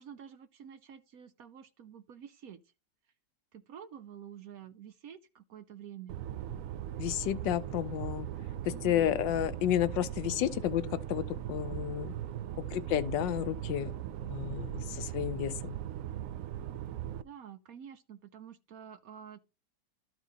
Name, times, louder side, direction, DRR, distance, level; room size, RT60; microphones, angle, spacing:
voice 1, 0.0-2.6 3.5-6.2 8.7-9.2 17.2-19.4, right 9 dB, 65° right, 1.0 m, -49 dB
sound 1, 6.1-17.2, right 11 dB, 80° right, 0.7 m, -39 dB
voice 2, 7.0-8.3 8.6-12.2 12.6-13.9 14.2-15.7, left 12 dB, 80° left, 1.3 m, -31 dB
12.5 x 4.5 x 4.0 m
omnidirectional pair, 2.0 m